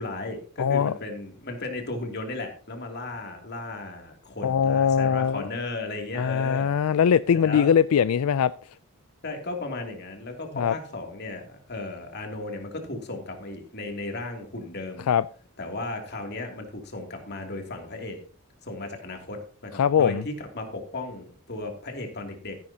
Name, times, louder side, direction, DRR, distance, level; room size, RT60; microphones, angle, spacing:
voice 1, 0.0-6.7 7.3-7.7 9.2-15.1 15.6-18.2 18.6-22.6, left 2 dB, 50° left, 3 dB, 2.8 m, -35 dB
voice 2, 0.6-0.9 4.4-5.5 6.1-8.5 10.5-10.7 15.1-15.2 19.8-20.2, left 7 dB, 90° left, 15 dB, 0.4 m, -21 dB
14.5 x 10.5 x 2.9 m, 0.42 s
head